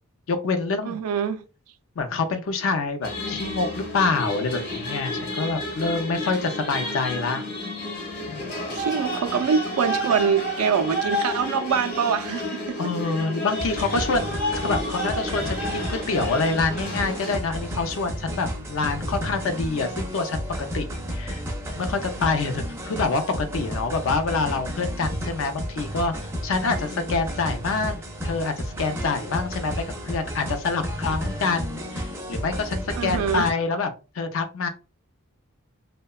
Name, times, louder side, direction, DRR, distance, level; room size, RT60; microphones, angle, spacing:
voice 1, 0.3-1.0 2.0-7.5 8.3-8.6 12.8-14.3 14.6-21.4 21.8-26.1 26.4-34.7, left 4 dB, 60° left, 0.4 m, -26 dB
voice 2, 0.8-1.4 8.7-12.8 33.0-33.4, right 6 dB, 80° right, 0.3 m, -24 dB
sound 1, 3.0-17.4, left 1 dB, 45° left, 0.9 m, -30 dB
sound 2, 13.6-33.5, equal, 10° right, 0.4 m, -32 dB
2.7 x 2.1 x 2.2 m
head